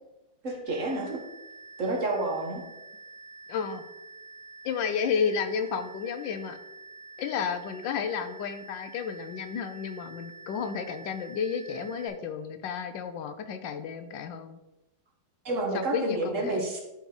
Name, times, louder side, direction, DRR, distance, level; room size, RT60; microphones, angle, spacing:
voice 1, 0.4-1.2 1.8-2.6 15.4-16.8, right 2 dB, 45° right, 1 dB, 1.5 m, -29 dB
sound 1, 0.7-12.1, right 3 dB, 25° right, 2.3 m, -48 dB
voice 2, 3.5-3.8 4.6-6.6 7.2-14.6 15.7-16.7, left 6 dB, 80° left, 9 dB, 1.4 m, -32 dB
11.5 x 4.4 x 3.9 m, 1.0 s
omnidirectional pair, 2.0 m